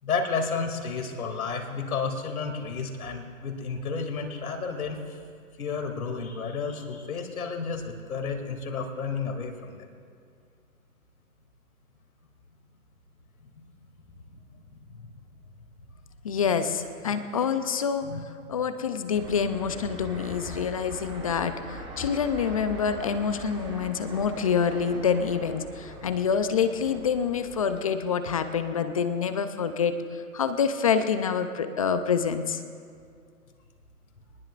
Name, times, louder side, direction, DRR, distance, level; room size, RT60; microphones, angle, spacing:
voice 1, 0.0-5.2 5.6-9.9 14.7-15.1 18.0-18.2 18.5-18.6, left 5 dB, 70° left, 4 dB, 2.7 m, -32 dB
voice 2, 16.2-18.1 18.5-32.6, left 6 dB, 25° left, 9 dB, 0.5 m, -27 dB
Fixed-wing aircraft airplane, 19.1-27.8, right 2 dB, 10° right, 1.2 m, -42 dB
23.0 x 20.0 x 2.5 m, 2.3 s
hypercardioid pair, 145°, 45 cm